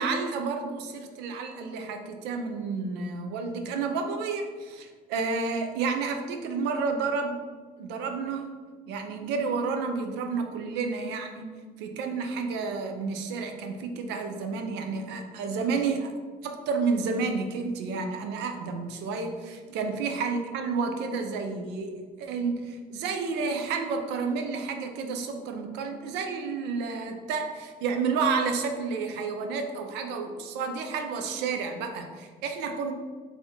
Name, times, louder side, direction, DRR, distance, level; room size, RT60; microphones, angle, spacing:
voice 1, 0.0-7.5 7.8-8.5 8.9-11.5 11.8-16.1 16.4-32.9, right 4 dB, 90° right, 5 dB, 0.5 m, -30 dB
4.0 x 2.7 x 2.8 m, 1.5 s
cardioid pair, 110°, 17 cm